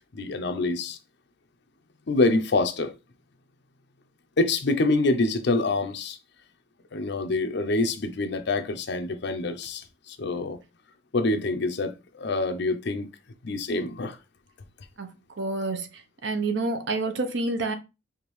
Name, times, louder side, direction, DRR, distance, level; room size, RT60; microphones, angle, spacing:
voice 1, 0.1-1.0 2.1-2.9 4.4-6.2 6.9-10.6 11.1-13.1 13.4-14.2, left 2 dB, 60° left, 0.6 m, -26 dB
voice 2, 15.4-15.9 16.2-17.7, right 3 dB, 65° right, 0.7 m, -28 dB
4.9 x 2.6 x 3.1 m
head